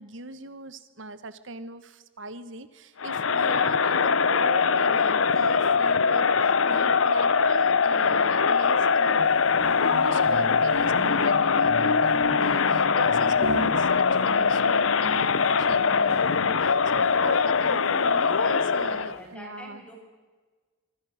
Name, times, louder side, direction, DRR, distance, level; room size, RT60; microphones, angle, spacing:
voice 1, 0.0-9.3 9.8-19.8, right 3 dB, 70° right, 13 dB, 1.3 m, -39 dB
Crowd, 3.0-19.2, left 5 dB, 85° left, 0.9 m, -22 dB
sound 1, 9.1-19.3, right 1 dB, 55° right, 1.4 m, -40 dB
voice 2, 18.1-19.9, equal, 5° left, 0 dB, 7.0 m, -46 dB
26.0 x 26.0 x 6.5 m, 1.4 s
head